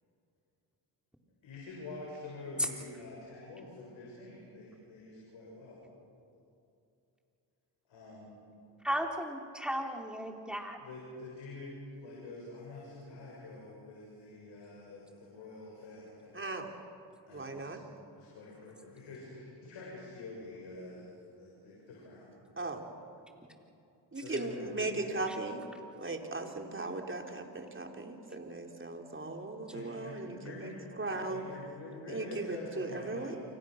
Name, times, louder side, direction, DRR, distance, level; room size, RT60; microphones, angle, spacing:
voice 1, 1.4-5.8 7.9-8.4 10.8-16.7 17.3-17.7 18.1-22.3 24.2-25.1 29.7-30.9 31.2-33.4, left 2 dB, 75° left, -4 dB, 7.2 m, -46 dB
voice 2, 8.8-10.8 25.3-25.4, equal, ahead, 1 dB, 3.8 m, -35 dB
voice 3, 16.3-16.7 17.3-17.8 22.6-22.8 24.1-25.6 26.0-31.4 32.1-33.4, right 2 dB, 25° right, 3 dB, 3.8 m, -38 dB
28.5 x 24.5 x 6.6 m, 2.7 s
supercardioid pair, 60°, 45 cm